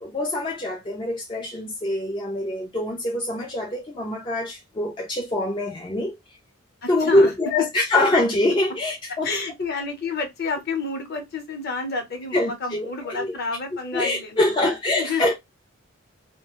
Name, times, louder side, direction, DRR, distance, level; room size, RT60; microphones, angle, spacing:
voice 1, 0.0-6.2 6.9-9.3 12.3-13.3 13.9-15.3, left 1 dB, 25° left, 0.4 m, -24 dB
voice 2, 6.8-7.3 9.2-15.2, left 4 dB, 50° left, 0.8 m, -30 dB
2.4 x 2.2 x 2.9 m
head